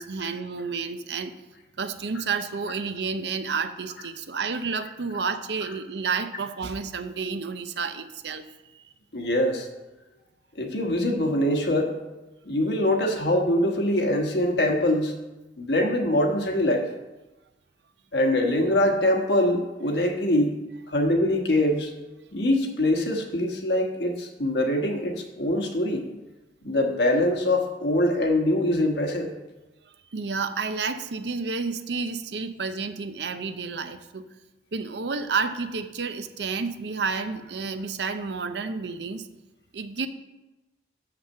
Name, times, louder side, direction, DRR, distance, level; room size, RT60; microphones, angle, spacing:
voice 1, 0.0-1.3 1.8-8.8 30.1-34.2 34.7-39.3 39.7-40.1, right 5 dB, 65° right, 10 dB, 0.6 m, -30 dB
voice 2, 9.1-9.7 10.5-11.9 12.4-15.1 15.6-16.9 18.1-20.6 20.9-21.9 22.3-26.0 26.6-29.3, left 1 dB, 70° left, 2 dB, 1.3 m, -23 dB
7.3 x 5.9 x 6.5 m, 1.1 s
head